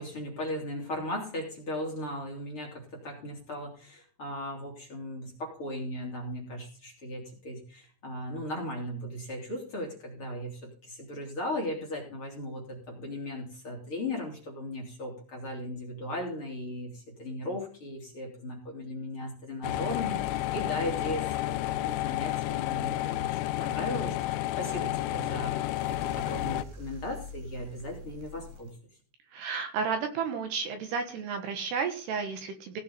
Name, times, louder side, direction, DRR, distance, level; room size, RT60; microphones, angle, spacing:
voice 1, 0.0-28.7, left 1 dB, 30° left, -1 dB, 3.5 m, -37 dB
sound 1, 19.6-26.7, left 15 dB, 85° left, 3.2 m, -31 dB
sound 2, 25.8-28.7, left 1 dB, 90° right, 5.7 m, -45 dB
voice 2, 29.3-32.8, right 5 dB, 70° right, 6 dB, 3.3 m, -32 dB
17.0 x 6.6 x 5.6 m, 0.40 s
omnidirectional pair, 5.4 m